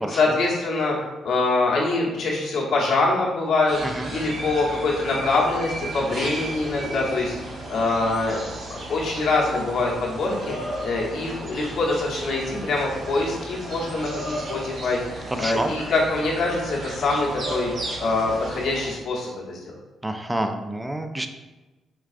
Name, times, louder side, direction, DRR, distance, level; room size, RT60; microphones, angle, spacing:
voice 1, 0.1-1.0 1.2-3.8 4.1-7.4 7.7-8.4 8.9-17.7 18.0-19.6, left 3 dB, 70° left, -3 dB, 1.0 m, -24 dB
sound 1, 3.7-18.9, right 1 dB, 55° right, 0.9 m, -34 dB
voice 2, 15.3-15.7 20.0-21.3, right 1 dB, 15° right, 7 dB, 0.4 m, -28 dB
4.6 x 2.4 x 2.4 m, 1.1 s
supercardioid pair, 55°, 0 cm